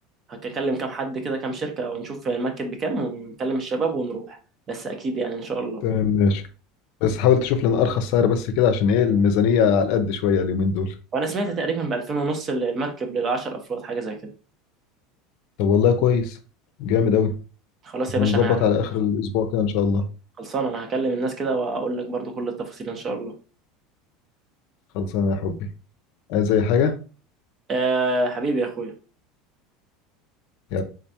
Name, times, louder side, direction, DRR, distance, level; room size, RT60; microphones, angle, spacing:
voice 1, 0.3-4.4 4.7-5.8 11.1-14.2 17.8-18.6 20.4-23.3 27.7-28.9, right 3 dB, 35° right, 4 dB, 1.0 m, -27 dB
voice 2, 5.8-6.4 7.0-10.9 15.6-16.4 16.8-17.3 18.2-20.0 24.9-25.6 26.3-26.9 30.7-30.8, left 7 dB, 65° left, 8 dB, 0.6 m, -20 dB
3.8 x 3.3 x 2.8 m, 0.35 s
supercardioid pair, 125°, 0 cm